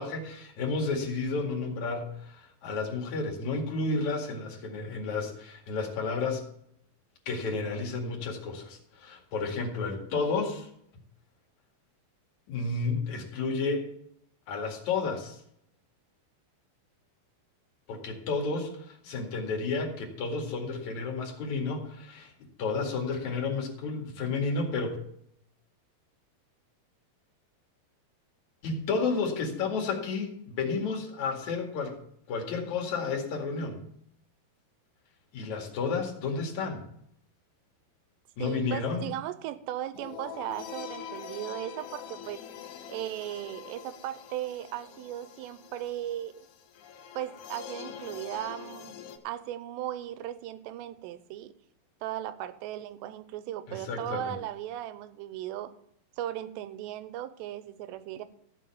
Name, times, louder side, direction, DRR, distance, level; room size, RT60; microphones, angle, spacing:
voice 1, 0.0-6.4 7.3-10.7 12.5-13.9 14.5-15.4 17.9-22.3 22.6-25.0 28.6-32.0 32.3-33.8 35.3-36.8 38.4-39.1 53.7-54.3, left 4 dB, 50° left, 1 dB, 3.0 m, -31 dB
voice 2, 38.4-42.4 42.9-46.5 47.2-49.0 49.2-51.5 52.0-55.8 56.2-58.2, right 12 dB, 85° right, 13 dB, 2.9 m, -37 dB
sound 1, 39.9-49.2, left 8 dB, 85° left, 1.7 m, -44 dB
14.5 x 5.6 x 8.5 m, 0.71 s
omnidirectional pair, 5.0 m